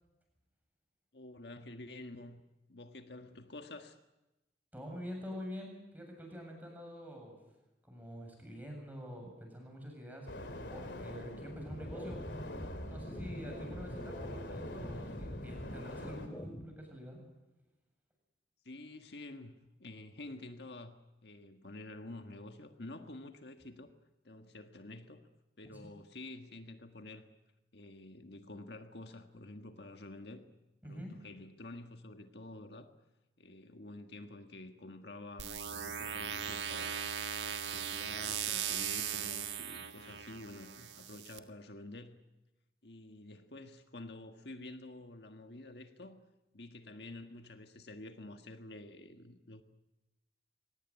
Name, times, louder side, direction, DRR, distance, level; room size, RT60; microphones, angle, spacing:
voice 1, 1.1-2.4 2.7-4.0 18.6-23.9 24.2-25.3 25.6-27.3 27.7-30.5 30.8-32.9 33.4-37.0 37.4-42.2 42.8-46.2 46.5-49.6, left 2 dB, 65° left, 6 dB, 1.6 m, -49 dB
voice 2, 4.7-7.4 7.8-10.3 10.7-12.2 12.8-17.2 25.6-25.8 30.8-31.2, equal, 10° right, 2 dB, 7.5 m, -46 dB
sound 1, 10.3-16.3, left 1 dB, 90° left, 2.9 m, -45 dB
sound 2, 11.6-16.6, equal, 20° left, 2.7 m, -45 dB
sound 3, 35.4-41.4, right 8 dB, 85° right, 1.7 m, -38 dB
23.0 x 19.0 x 9.9 m, 1.0 s
head